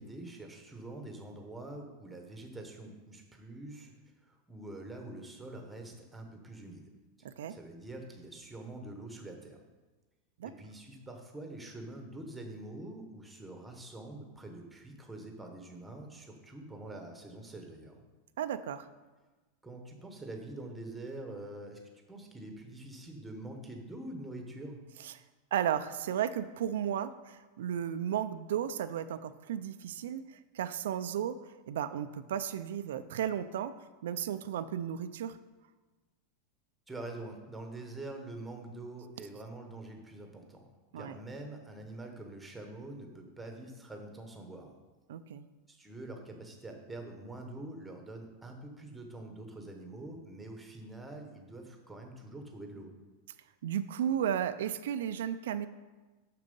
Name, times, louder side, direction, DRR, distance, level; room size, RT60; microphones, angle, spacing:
voice 1, 0.0-3.9 4.2-6.9 7.5-9.6 10.4-18.0 19.6-21.8 22.1-24.8 36.9-40.7 41.0-44.7 45.7-52.9, right 2 dB, 5° right, 3 dB, 0.9 m, -45 dB
voice 2, 7.2-7.6 10.4-10.5 18.4-18.9 25.0-25.1 25.5-31.4 31.7-33.7 34.0-35.4 40.9-41.1 45.1-45.5 53.6-55.7, right 9 dB, 85° right, 11 dB, 0.4 m, -34 dB
6.7 x 6.2 x 5.3 m, 1.2 s
supercardioid pair, 170°, 0 cm